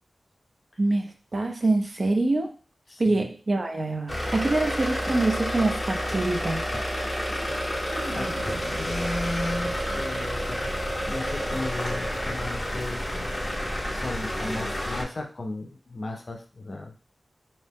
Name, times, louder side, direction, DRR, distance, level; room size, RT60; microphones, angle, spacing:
voice 1, 0.8-2.5 3.0-6.7, right 2 dB, 45° right, 4 dB, 0.5 m, -25 dB
voice 2, 2.9-3.3 8.0-8.3 8.6-10.8 11.1-17.0, left 2 dB, 50° left, 4 dB, 0.4 m, -35 dB
sound 1, 4.1-15.0, equal, 15° left, 0.7 m, -30 dB
sound 2, 7.9-14.6, equal, 85° right, 0.7 m, -37 dB
2.6 x 2.1 x 3.4 m, 0.38 s
wide cardioid pair, 90°, 0 cm